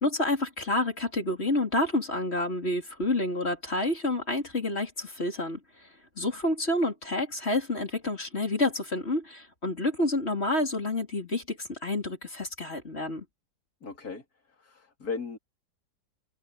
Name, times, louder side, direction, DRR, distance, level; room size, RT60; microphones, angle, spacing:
voice 1, 0.0-5.6 6.2-13.2, left 2 dB, 35° left, 4.3 m, -29 dB
voice 2, 13.8-15.4, left 4 dB, 55° left, 4.2 m, -37 dB
omnidirectional pair, 1.9 m